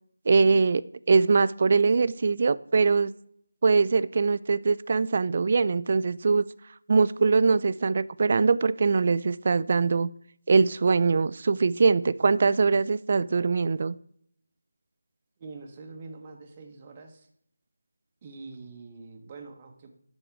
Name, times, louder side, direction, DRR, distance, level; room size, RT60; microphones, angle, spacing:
voice 1, 0.3-3.1 3.6-6.5 6.9-10.1 10.5-14.0, right 4 dB, 40° right, 18 dB, 0.3 m, -22 dB
voice 2, 15.4-17.3 18.2-19.9, right 3 dB, 25° right, 3 dB, 1.1 m, -44 dB
8.9 x 6.4 x 4.7 m, 0.67 s
figure-of-eight pair, 165°, 0 cm